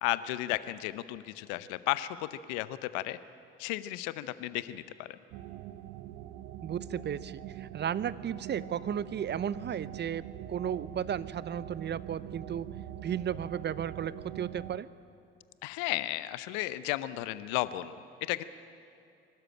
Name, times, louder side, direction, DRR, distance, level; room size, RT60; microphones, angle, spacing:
voice 1, 0.0-3.2 3.6-5.2 15.6-18.4, left 16 dB, 70° left, 15 dB, 0.8 m, -34 dB
sound 1, 5.3-14.8, right 12 dB, 65° right, 0.9 m, -43 dB
voice 2, 6.6-12.7 13.0-14.9, right 9 dB, 35° right, 18 dB, 0.7 m, -34 dB
23.5 x 13.0 x 8.9 m, 2.5 s
hypercardioid pair, 60°, 29 cm